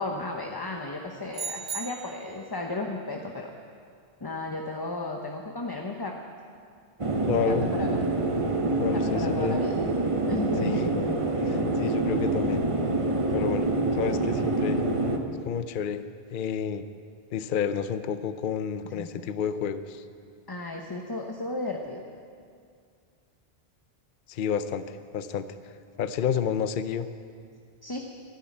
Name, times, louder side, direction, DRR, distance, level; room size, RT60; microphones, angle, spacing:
voice 1, 0.0-3.5 4.2-6.2 7.5-8.0 8.7-9.7 10.3-11.2 18.9-19.3 20.5-22.0 27.8-28.0, left 2 dB, 25° left, 2 dB, 0.9 m, -34 dB
sound 1, 1.3-2.4, right 6 dB, 60° right, 1.0 m, -36 dB
sound 2, 7.0-15.2, right 2 dB, 30° right, 1.0 m, -26 dB
voice 2, 7.3-7.7 8.8-9.6 10.6-10.8 11.4-12.6 13.3-13.7 13.9-14.8 15.5-16.0 16.3-16.8 17.3-20.0 24.3-27.1, left 7 dB, 55° left, 11 dB, 0.7 m, -30 dB
13.5 x 11.5 x 8.6 m, 2.2 s
omnidirectional pair, 1.1 m